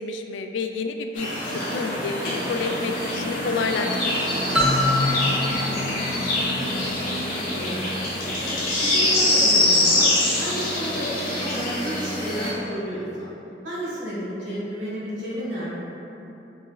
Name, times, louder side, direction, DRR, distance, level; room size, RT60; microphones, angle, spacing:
voice 1, 0.0-1.4 1.7-4.2, left 4 dB, 80° left, 5 dB, 0.3 m, -29 dB
sound 1, 1.2-12.5, left 1 dB, 50° left, 1.1 m, -24 dB
sound 2, 4.5-7.2, left 1 dB, 5° right, 0.5 m, -25 dB
voice 2, 5.2-7.1 7.3-8.1 8.8-10.1 10.4-13.3 13.6-15.7, equal, 80° right, -8 dB, 1.5 m, -32 dB
4.6 x 4.1 x 2.3 m, 3.0 s
head